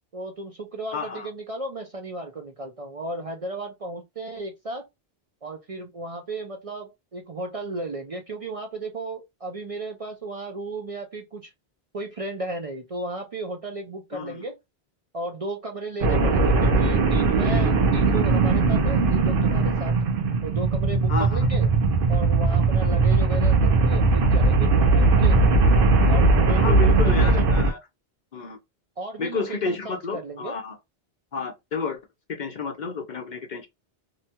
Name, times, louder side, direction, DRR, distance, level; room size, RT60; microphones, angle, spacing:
voice 1, 0.1-4.9 5.4-11.5 11.9-14.6 15.1-19.9 20.4-21.7 22.1-25.4 26.1-27.5 29.0-30.6, right 2 dB, 45° right, 0.5 m, -34 dB
voice 2, 0.9-1.3 14.1-14.4 21.1-21.5 26.5-27.8 28.3-28.6 29.2-30.7 31.3-32.0 32.3-33.7, left 4 dB, 55° left, 0.7 m, -31 dB
sound 1, 16.0-27.7, right 3 dB, 65° right, 0.9 m, -19 dB
2.8 x 2.2 x 2.8 m
omnidirectional pair, 1.0 m